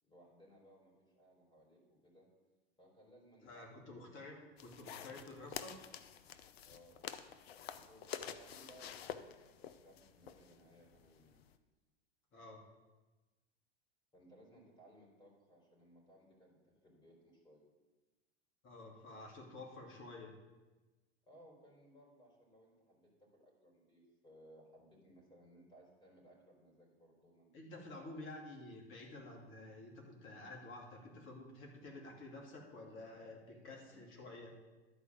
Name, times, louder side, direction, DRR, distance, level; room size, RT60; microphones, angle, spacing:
voice 1, 0.0-2.3 2.8-4.1 6.6-7.1 7.6-11.4 14.1-17.7 21.3-28.2 33.9-34.1, equal, 15° left, -2 dB, 3.9 m, -63 dB
voice 2, 3.4-5.8 12.3-12.6 18.6-20.3 27.5-34.5, left 2 dB, 40° left, 0 dB, 2.5 m, -51 dB
sound 1, 4.6-11.5, left 9 dB, 65° left, 0.7 m, -49 dB
11.5 x 4.7 x 7.4 m, 1.2 s
figure-of-eight pair, 85°, 33 cm